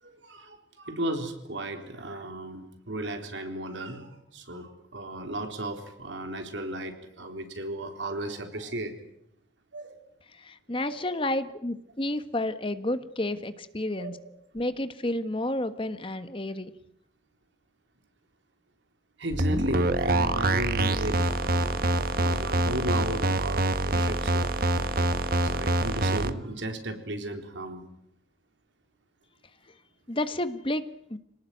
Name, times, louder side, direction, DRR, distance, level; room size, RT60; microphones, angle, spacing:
voice 1, 0.0-9.0 9.7-10.0 10.9-11.1 14.0-14.2 19.2-21.9 22.2-24.5 25.4-27.9, right 1 dB, 80° right, 5 dB, 3.9 m, -35 dB
voice 2, 10.4-14.2 14.5-16.7 30.1-30.8 31.1-31.2, left 1 dB, 30° left, 11 dB, 1.3 m, -30 dB
sound 1, 19.3-26.3, right 1 dB, 50° right, 1.4 m, -25 dB
26.0 x 19.0 x 9.2 m, 0.76 s
head